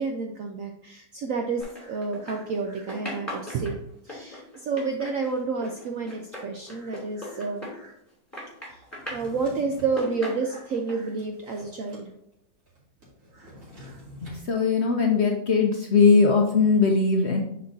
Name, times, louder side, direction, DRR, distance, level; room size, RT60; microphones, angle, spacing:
voice 1, 0.0-3.8 4.0-7.9 8.6-8.8 9.1-12.1 13.3-13.5 13.8-14.0, right 4 dB, 75° right, 3 dB, 0.7 m, -30 dB
sound 1, 1.6-2.6 2.9-8.1 8.3-9.3 9.8-10.9, left 1 dB, 10° left, 2.1 m, -38 dB
Drawer open or close, 9.0-10.0 10.6-12.1 12.3-12.4 12.7-14.4, left 1 dB, 45° right, 2.6 m, -46 dB
voice 2, 14.2-17.4, left 4 dB, 70° left, 1 dB, 0.6 m, -20 dB
9.3 x 4.4 x 2.7 m, 0.79 s
omnidirectional pair, 2.0 m